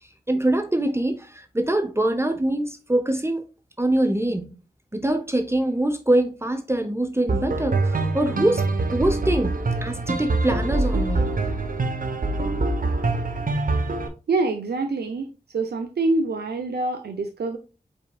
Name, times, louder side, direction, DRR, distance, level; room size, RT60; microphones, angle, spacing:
voice 1, 0.3-3.4 3.8-4.6 4.9-8.6 8.9-11.3, right 1 dB, 15° right, 0.8 m, -24 dB
sound 1, 7.3-14.1, right 2 dB, 60° right, 1.0 m, -24 dB
voice 2, 14.3-17.6, right 3 dB, 85° right, 0.6 m, -25 dB
5.3 x 4.3 x 2.3 m
cardioid pair, 55°, 16 cm